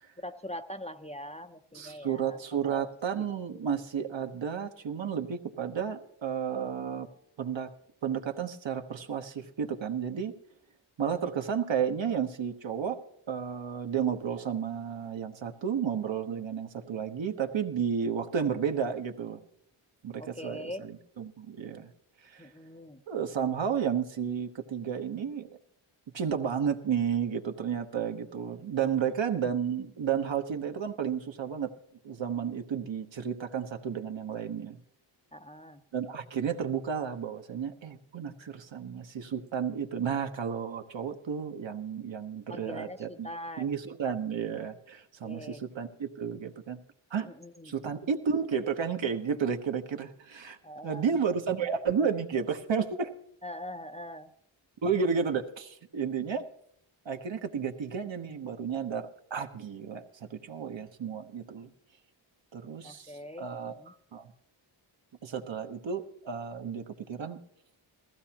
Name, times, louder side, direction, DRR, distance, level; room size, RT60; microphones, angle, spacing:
voice 1, 0.2-2.4 2.7-2.9 3.1-3.6 20.2-20.8 22.4-23.0 35.3-35.8 42.5-43.8 45.2-45.6 47.2-47.8 50.6-51.0 53.4-54.3 62.8-63.9, equal, 15° left, 6 dB, 0.6 m, -42 dB
voice 2, 1.7-7.1 7.4-7.7 8.0-10.3 11.0-13.0 13.3-19.4 20.0-21.9 22.2-22.5 23.1-25.5 26.1-31.7 32.0-34.8 35.9-43.3 43.6-46.8 47.1-47.3 47.6-50.6 50.8-53.1 54.8-56.5 57.0-61.7 62.5-64.3 65.2-67.4, right 7 dB, 60° right, 5 dB, 1.2 m, -32 dB
19.5 x 15.0 x 2.9 m, 0.69 s
cardioid pair, 70°, 50 cm